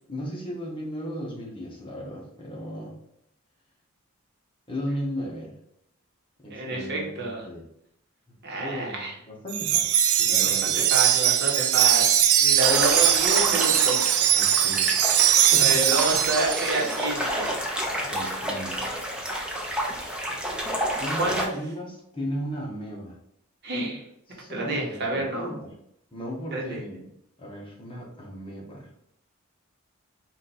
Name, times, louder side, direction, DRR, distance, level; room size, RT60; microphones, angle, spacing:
voice 1, 0.1-2.9 4.7-5.6 6.4-7.6 8.3-10.9 14.3-15.0 15.5-15.8 18.0-18.8 21.0-23.2 24.3-25.7 26.1-27.1 27.4-28.9, equal, 25° left, -3 dB, 1.1 m, -36 dB
voice 2, 6.5-7.4 8.4-9.1 10.4-14.0 15.6-17.6 21.2-21.5 23.6-24.0 24.5-25.6 26.5-26.8, right 2 dB, 50° right, -1 dB, 1.2 m, -29 dB
Wind chime, 9.5-17.0, right 10 dB, 75° right, 0.4 m, -21 dB
sound 1, 12.6-21.4, equal, 5° right, 0.6 m, -30 dB
4.1 x 2.6 x 4.2 m, 0.76 s
head